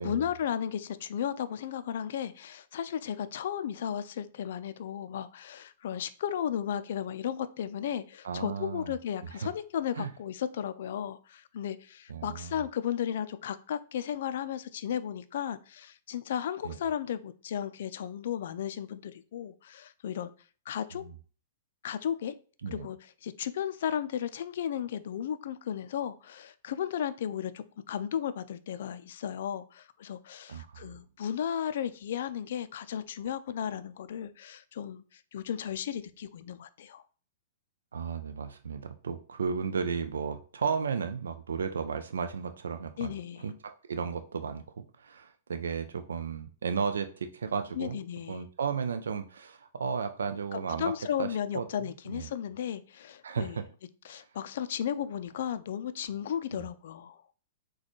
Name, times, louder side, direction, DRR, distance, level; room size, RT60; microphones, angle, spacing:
voice 1, 0.0-20.3 20.7-21.0 21.8-22.3 22.7-37.0 43.0-43.4 47.7-48.4 50.5-53.6 54.0-57.2, left 9 dB, 65° left, 13 dB, 0.4 m, -34 dB
voice 2, 8.2-8.9 9.3-9.5 10.0-10.1 12.1-12.6 16.6-16.8 20.9-21.0 22.6-22.9 30.5-31.0 37.9-43.2 43.4-48.0 48.3-50.9 51.2-52.3 53.2-53.6 54.1-54.3 56.5-56.7, right 6 dB, 85° right, 9 dB, 0.3 m, -34 dB
4.0 x 2.2 x 3.0 m, 0.39 s
hypercardioid pair, 130°, 0 cm